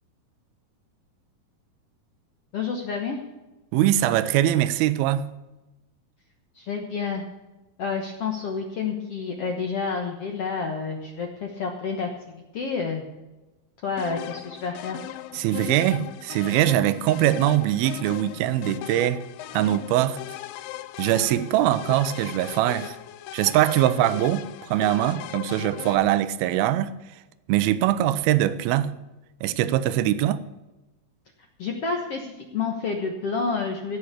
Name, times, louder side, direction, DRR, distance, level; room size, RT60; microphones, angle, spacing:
voice 1, 2.5-3.2 6.5-7.2 7.8-12.1 12.5-13.0 13.8-15.0 31.6-34.0, left 5 dB, 65° left, 1.5 m, -29 dB
voice 2, 3.7-5.3 15.3-19.2 19.5-20.2 21.0-23.0 23.3-26.9 27.5-28.9 29.4-30.4, right 13 dB, 80° right, 2.5 m, -22 dB
sound 1, 14.0-26.0, left 15 dB, 90° left, 2.0 m, -38 dB
16.5 x 6.4 x 8.4 m
omnidirectional pair, 4.5 m